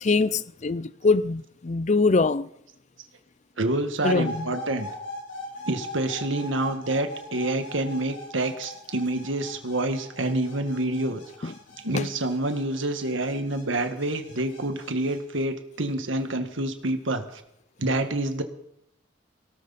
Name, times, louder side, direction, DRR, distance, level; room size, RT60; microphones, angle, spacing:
voice 1, 0.0-2.5 4.0-4.6 11.4-11.5 11.9-12.1, left 3 dB, 35° left, 0.5 m, -23 dB
voice 2, 3.6-4.9 5.7-11.5 11.8-17.4 17.8-18.4, right 2 dB, 80° right, 1.7 m, -27 dB
sound 1, 4.0-15.2, left 2 dB, 80° left, 5.4 m, -41 dB
18.5 x 17.5 x 4.2 m
head